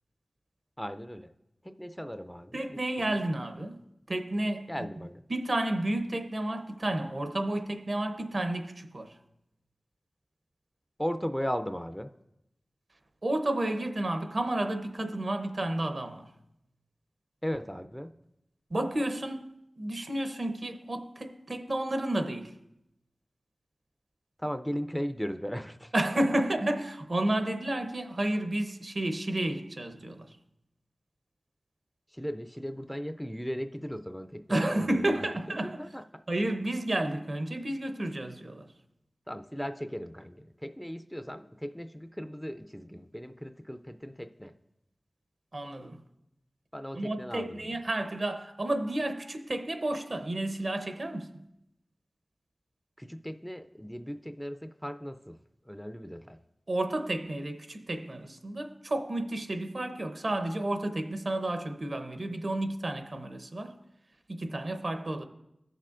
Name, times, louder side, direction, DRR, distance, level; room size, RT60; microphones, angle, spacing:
voice 1, 0.8-1.3 1.6-3.2 4.7-5.2 11.0-12.1 17.4-18.1 24.4-25.9 32.1-35.0 35.5-36.0 39.3-44.5 46.7-47.8 53.0-55.4 55.6-56.4, equal, 5° left, 0.4 m, -37 dB
voice 2, 2.5-3.8 4.1-4.7 5.3-9.1 13.2-16.3 18.7-22.5 25.9-30.3 34.5-35.8 36.3-38.7 45.5-46.0 47.0-51.3 56.7-63.7 64.3-65.2, right 1 dB, 55° right, 0.8 m, -31 dB
15.0 x 6.6 x 2.5 m
wide cardioid pair, 55°, 0 cm